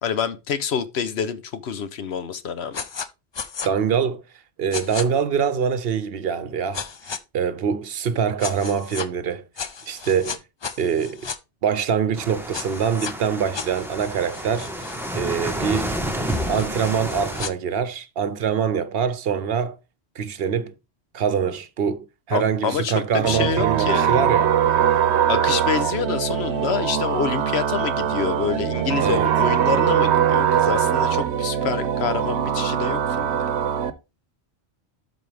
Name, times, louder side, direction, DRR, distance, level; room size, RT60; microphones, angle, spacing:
voice 1, 0.0-2.8 22.3-24.2 25.3-33.4, left 7 dB, 75° left, 1.0 m, -27 dB
sound 1, 2.7-3.1 3.3-3.7 4.7-5.0 6.7-7.2 8.4-9.1 9.6-11.4 12.5-13.1 13.5-17.5, left 6 dB, 45° left, 0.3 m, -34 dB
voice 2, 3.6-4.2 4.6-6.9 7.3-9.4 9.9-10.4 10.8-11.2 11.6-14.7 15.1-15.9 16.5-19.8 20.2-20.7 21.1-24.6 29.0-29.3, right 7 dB, 65° right, 0.9 m, -24 dB
sound 2, 12.2-17.5, equal, ahead, 1.0 m, -30 dB
sound 3, 23.2-33.9, right 9 dB, 85° right, 1.0 m, -22 dB
12.5 x 4.1 x 3.4 m
omnidirectional pair, 1.1 m